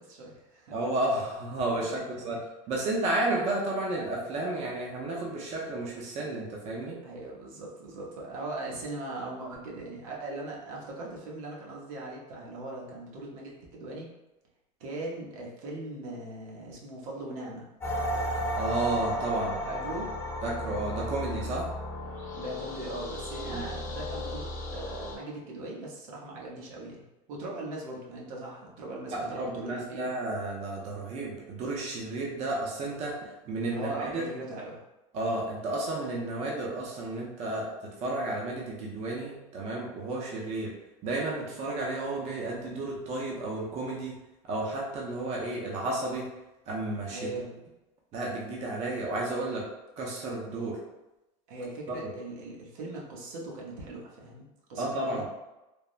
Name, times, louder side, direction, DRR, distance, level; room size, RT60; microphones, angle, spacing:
voice 1, 0.0-0.7 1.7-1.8 2.2-2.4 7.0-14.1 14.8-17.7 19.6-20.1 22.3-30.1 33.7-34.8 47.1-47.6 51.5-55.3, right 2 dB, 80° right, -3 dB, 0.8 m, -40 dB
voice 2, 0.7-7.0 18.5-19.6 20.4-21.7 23.5-23.7 29.1-34.2 35.1-40.7 41.0-44.2 44.5-46.3 46.7-47.3 48.1-49.7 50.0-50.8 51.9-52.1 54.8-55.3, right 2 dB, 40° right, -3 dB, 0.6 m, -32 dB
sound 1, 17.8-25.1, equal, 15° left, 0.7 m, -34 dB
3.3 x 2.0 x 2.5 m, 1.0 s
supercardioid pair, 135°, 17 cm